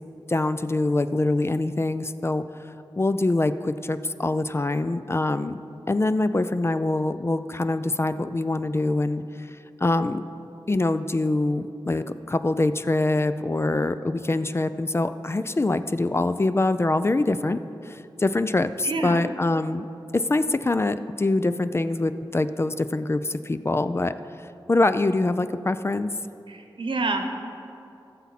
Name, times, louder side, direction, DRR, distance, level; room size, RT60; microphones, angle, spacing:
voice 1, 0.3-2.4 3.0-5.6 5.9-10.2 10.7-19.9 20.1-24.1 24.7-26.1, left 2 dB, 30° left, 12 dB, 0.4 m, -24 dB
voice 2, 18.8-19.2 26.5-27.4, right 3 dB, 70° right, 5 dB, 1.0 m, -28 dB
14.0 x 7.1 x 4.1 m, 2.7 s
cardioid pair, 50°, 9 cm